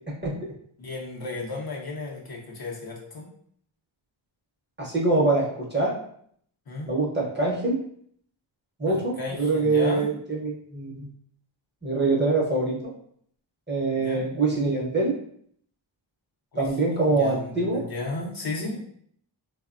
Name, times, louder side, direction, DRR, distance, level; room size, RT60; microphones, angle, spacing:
voice 1, 0.8-3.3 6.7-6.9 8.9-10.1 13.9-14.2 16.5-18.8, left 2 dB, 50° left, -2 dB, 0.6 m, -34 dB
voice 2, 4.8-5.9 6.9-7.8 8.8-11.1 11.8-12.9 13.7-15.1 16.6-17.8, right 3 dB, 25° right, -4 dB, 0.7 m, -24 dB
3.2 x 2.1 x 2.4 m, 0.64 s
wide cardioid pair, 100°, 47 cm